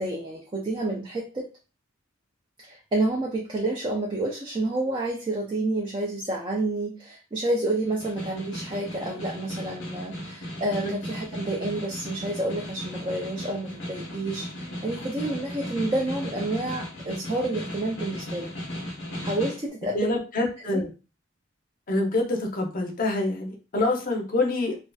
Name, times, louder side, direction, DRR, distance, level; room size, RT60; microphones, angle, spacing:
voice 1, 0.0-1.5 2.6-18.5 19.2-20.0 20.7-20.8, right 2 dB, 25° right, -2 dB, 0.4 m, -29 dB
Snare drum, 7.8-19.7, equal, 75° left, 0.8 m, -36 dB
voice 2, 19.9-20.9 21.9-24.8, left 2 dB, 45° left, 2 dB, 0.6 m, -26 dB
2.4 x 2.3 x 2.2 m, 0.32 s
head